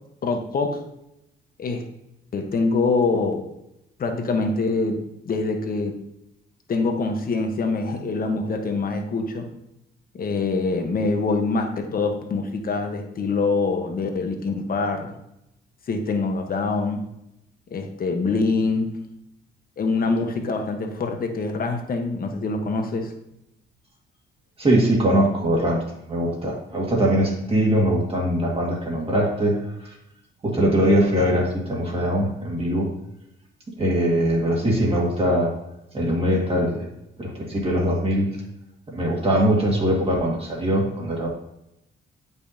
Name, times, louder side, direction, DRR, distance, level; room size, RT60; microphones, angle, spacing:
voice 1, 0.2-0.8 1.6-1.9 2.3-3.4 4.0-5.0 5.2-5.9 6.7-9.5 10.1-15.1 15.9-17.1 17.7-19.0 19.8-23.1, left 3 dB, 45° left, 5 dB, 1.1 m, -24 dB
voice 2, 24.6-25.8 26.1-30.0 30.4-32.9 33.8-35.5 35.9-36.9 37.2-38.4 38.9-41.3, right 1 dB, 30° right, -3 dB, 1.9 m, -22 dB
8.3 x 5.4 x 2.7 m, 0.86 s
cardioid pair, 90°, 20 cm